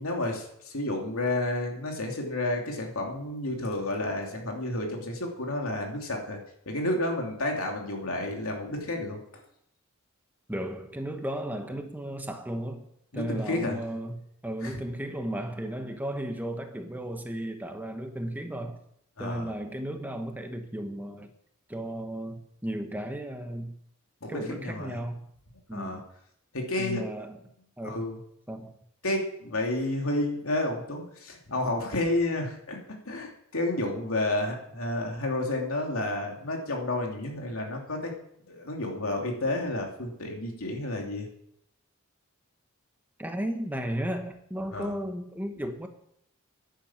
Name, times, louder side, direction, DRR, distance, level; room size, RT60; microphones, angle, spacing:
voice 1, 0.0-6.4 6.7-9.2 13.1-13.8 14.6-14.8 19.2-19.5 24.2-25.0 25.7-26.0 26.5-27.0 27.8-28.2 29.0-38.1 38.5-41.3 44.7-44.9, left 1 dB, 75° left, 1 dB, 2.9 m, -31 dB
voice 2, 10.5-12.9 13.1-18.8 19.2-21.3 21.7-23.8 24.3-25.2 25.7-26.1 26.8-27.4 27.8-28.0 28.5-28.7 43.2-45.9, right 1 dB, 10° right, 5 dB, 1.1 m, -34 dB
10.5 x 10.5 x 7.4 m, 0.74 s
head